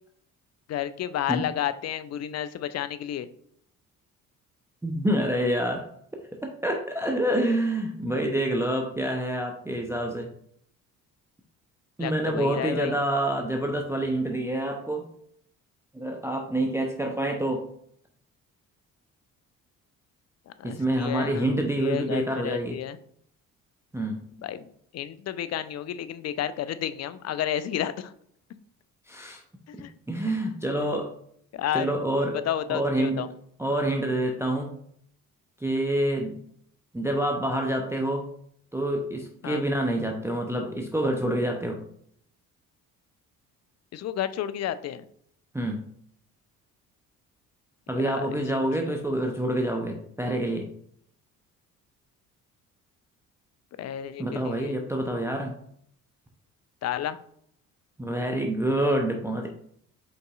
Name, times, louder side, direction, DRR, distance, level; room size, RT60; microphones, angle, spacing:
voice 1, 0.7-3.3 12.0-13.0 20.5-23.0 24.4-28.1 29.7-29.9 31.5-31.9 32.4-33.3 39.4-39.6 43.9-45.0 47.9-48.4 53.8-54.8 56.8-57.2, left 10 dB, 40° left, 13 dB, 0.4 m, -31 dB
voice 2, 4.8-10.3 12.0-15.1 15.9-17.7 20.6-22.8 23.9-24.2 29.1-29.4 30.1-31.1 31.7-32.4 32.7-33.2 33.6-34.7 35.6-36.4 36.9-38.3 38.7-41.8 45.5-45.9 47.9-50.7 54.2-55.6 58.0-59.5, right 1 dB, 5° right, 2 dB, 0.6 m, -27 dB
5.2 x 4.0 x 2.4 m, 0.66 s
hypercardioid pair, 50°, 42 cm